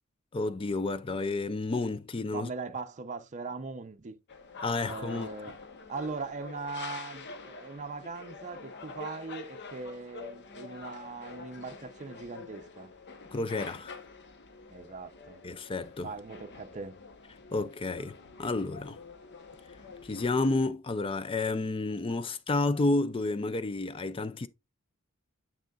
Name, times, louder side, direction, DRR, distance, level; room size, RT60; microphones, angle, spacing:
voice 1, 0.3-2.5 4.6-5.3 13.3-14.0 15.4-16.1 17.5-19.0 20.0-24.5, left 2 dB, 25° left, 0.4 m, -30 dB
voice 2, 2.3-4.2 4.8-5.6 5.9-12.9 14.7-15.4 16.0-16.9, right 4 dB, 35° right, 0.6 m, -40 dB
sound 1, 4.3-20.7, left 4 dB, 55° left, 0.9 m, -46 dB
7.3 x 6.5 x 2.3 m
head